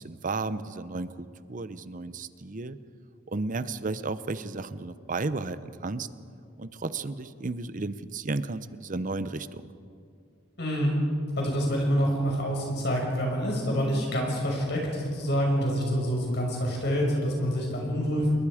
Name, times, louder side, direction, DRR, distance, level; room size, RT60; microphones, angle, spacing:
voice 1, 0.0-2.8 3.3-6.1 6.6-9.7, right 3 dB, 45° right, 13 dB, 0.8 m, -33 dB
voice 2, 10.6-11.0 11.4-18.3, equal, 60° left, -1 dB, 5.6 m, -27 dB
28.5 x 21.5 x 5.0 m, 2.4 s
head